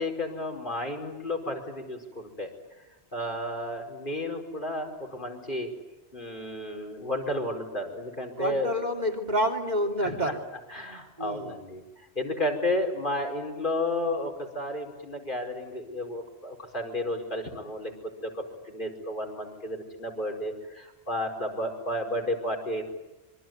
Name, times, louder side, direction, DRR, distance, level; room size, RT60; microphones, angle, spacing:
voice 1, 0.0-2.5 3.1-5.7 6.1-8.9 10.0-10.3 10.7-11.8 12.1-17.9 18.2-22.8, left 1 dB, 50° left, 3 dB, 5.0 m, -32 dB
voice 2, 8.4-10.4 11.2-11.5, equal, 40° right, 2 dB, 3.1 m, -28 dB
26.5 x 24.0 x 9.3 m, 1.0 s
omnidirectional pair, 1.1 m